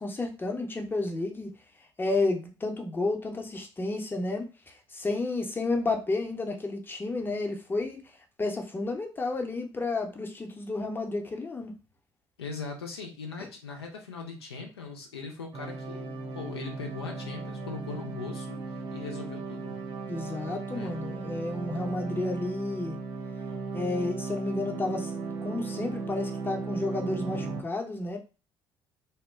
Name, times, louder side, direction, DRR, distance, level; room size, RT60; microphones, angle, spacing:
voice 1, 0.0-1.5 2.0-8.0 8.4-11.7 20.1-23.0 23.7-25.1 25.4-28.2, left 2 dB, 15° left, 0.6 m, -31 dB
voice 2, 12.4-19.8 20.7-20.9, left 4 dB, 80° left, 0.5 m, -40 dB
sound 1, 15.5-27.6, right 4 dB, 40° right, 0.5 m, -36 dB
2.7 x 2.1 x 2.3 m
figure-of-eight pair, 55°, 13 cm